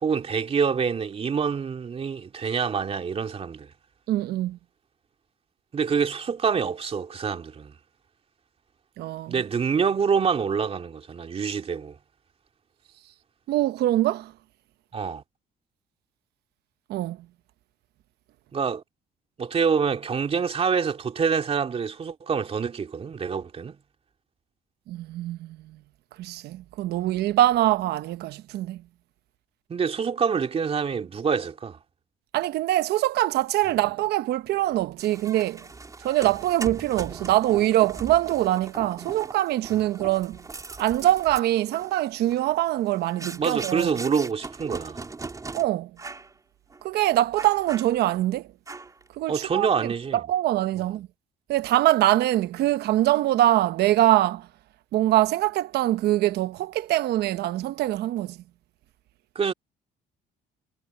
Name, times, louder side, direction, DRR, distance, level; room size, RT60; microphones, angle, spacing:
voice 1, 0.0-3.7 5.7-7.7 9.3-11.9 14.9-15.2 18.5-18.8 19.4-23.8 29.7-31.8 33.7-33.8 43.4-45.0 49.3-50.2 59.3-59.5, right 6 dB, 35° right, 2.8 m, -26 dB
voice 2, 4.1-4.6 9.0-9.3 13.5-14.3 16.9-17.2 24.9-25.6 26.2-28.8 32.3-35.6 36.0-40.4 40.8-43.9 45.5-45.9 46.8-48.4 49.2-49.9 50.3-51.1 51.5-54.5 54.9-58.4, right 14 dB, 75° right, 1.0 m, -23 dB
sound 1, 35.0-45.6 46.0-46.3 46.7-46.8 47.4-48.2 48.7-49.1, right 3 dB, 20° right, 4.0 m, -40 dB
cardioid pair, 110°, 17 cm